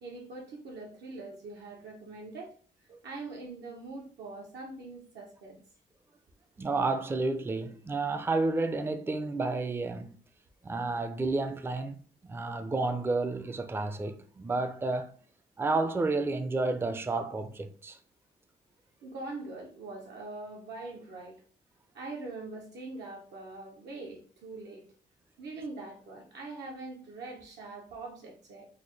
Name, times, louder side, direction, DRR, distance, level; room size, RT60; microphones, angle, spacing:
voice 1, 0.0-2.5 2.9-5.6 19.0-21.4 21.9-24.9 25.4-28.7, right 3 dB, 80° right, 0.7 m, -43 dB
voice 2, 6.6-10.2 10.6-12.0 12.2-15.1 15.6-18.0, right 3 dB, 15° right, 0.3 m, -31 dB
4.0 x 2.2 x 3.1 m
cardioid pair, 115°, 18 cm